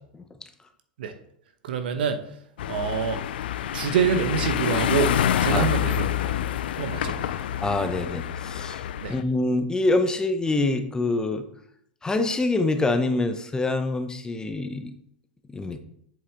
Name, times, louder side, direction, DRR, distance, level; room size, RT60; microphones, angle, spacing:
voice 1, 1.6-2.2 2.7-3.2 3.7-5.1 5.4-6.3 6.8-7.4 9.0-9.1, right 7 dB, 70° right, 8 dB, 0.9 m, -26 dB
sound 1, 2.6-9.2, left 10 dB, 75° left, 0.4 m, -27 dB
voice 2, 7.6-8.8 9.1-11.5 12.0-14.9 15.5-15.8, left 2 dB, 15° left, 8 dB, 0.8 m, -25 dB
7.4 x 5.5 x 3.5 m, 0.71 s
hypercardioid pair, 100°, 5 cm